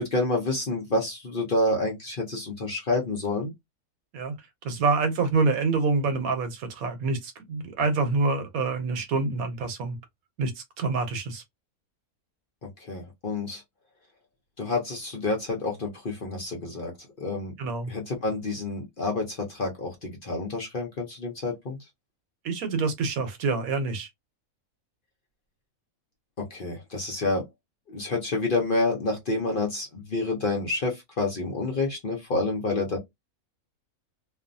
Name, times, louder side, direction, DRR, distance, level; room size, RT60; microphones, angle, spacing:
voice 1, 0.0-3.5 12.6-13.6 14.6-17.5 17.9-21.8 26.4-27.4 27.9-33.0, left 2 dB, 45° left, 0.8 m, -28 dB
voice 2, 4.6-10.0 10.4-11.4 17.6-17.9 22.4-24.1, right 4 dB, 75° right, 1.2 m, -26 dB
2.6 x 2.4 x 2.5 m
omnidirectional pair, 1.5 m